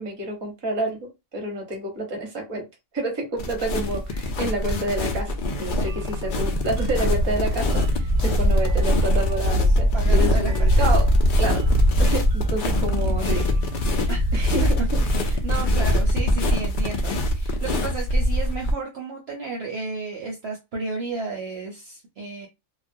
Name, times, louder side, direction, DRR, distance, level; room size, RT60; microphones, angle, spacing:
voice 1, 0.0-2.7 2.9-11.1 11.4-11.6 12.0-13.5 14.3-14.7, right 1 dB, 25° right, 1 dB, 0.6 m, -29 dB
sound 1, 3.4-18.7, equal, 75° left, 0.4 m, -22 dB
sound 2, 5.8-15.2, right 2 dB, 90° right, 1.1 m, -42 dB
voice 2, 9.9-10.7 14.1-14.3 14.6-22.5, right 3 dB, 60° right, -1 dB, 0.7 m, -33 dB
2.3 x 2.1 x 2.5 m, 0.23 s
omnidirectional pair, 1.5 m